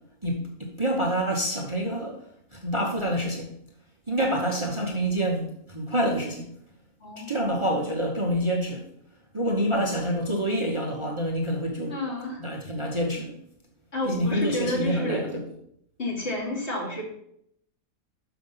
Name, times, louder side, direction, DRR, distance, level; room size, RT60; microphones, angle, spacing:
voice 1, 0.2-2.2 2.5-3.5 4.1-6.5 7.2-8.9 9.3-11.9 12.4-13.3 14.0-15.4, equal, 25° right, 0 dB, 1.0 m, -27 dB
voice 2, 7.0-7.4 11.9-12.4 13.9-15.3 16.0-17.0, left 2 dB, 50° left, -4 dB, 2.7 m, -30 dB
6.5 x 5.8 x 5.6 m, 0.71 s
omnidirectional pair, 1.4 m